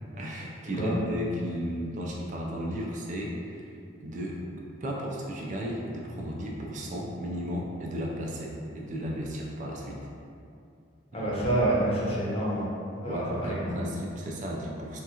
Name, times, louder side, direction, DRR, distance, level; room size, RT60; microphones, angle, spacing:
voice 1, 0.1-3.7 4.0-4.4 4.8-10.0 11.1-11.3 13.0-15.0, equal, 40° right, -2 dB, 0.4 m, -34 dB
voice 2, 11.1-12.6 13.0-13.7, right 1 dB, 30° left, -6 dB, 0.7 m, -27 dB
3.5 x 2.3 x 2.8 m, 2.5 s
head